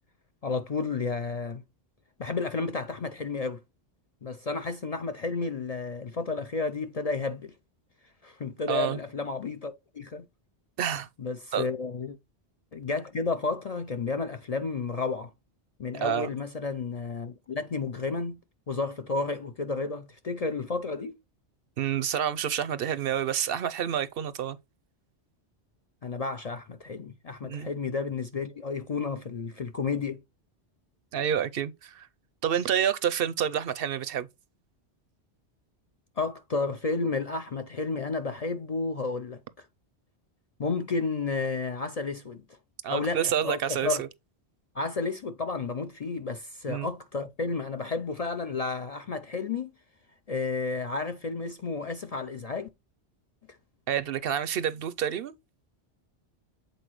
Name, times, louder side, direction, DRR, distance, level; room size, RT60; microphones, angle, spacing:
voice 1, 0.4-1.6 2.2-3.6 4.2-7.5 8.2-10.2 11.2-12.2 12.7-15.3 15.8-18.4 18.7-21.1 26.0-30.2 36.2-39.7 40.6-42.4 42.9-44.0 44.7-49.7 50.3-52.7, left 4 dB, 50° left, 0.5 m, -32 dB
voice 2, 8.7-9.0 10.8-11.1 11.5-11.7 15.9-16.3 21.8-24.6 27.5-27.7 31.1-32.1 32.4-34.3 42.8-44.1 46.7-46.9 53.9-55.3, right 9 dB, 65° right, 0.7 m, -28 dB
7.9 x 4.3 x 3.0 m
omnidirectional pair, 1.1 m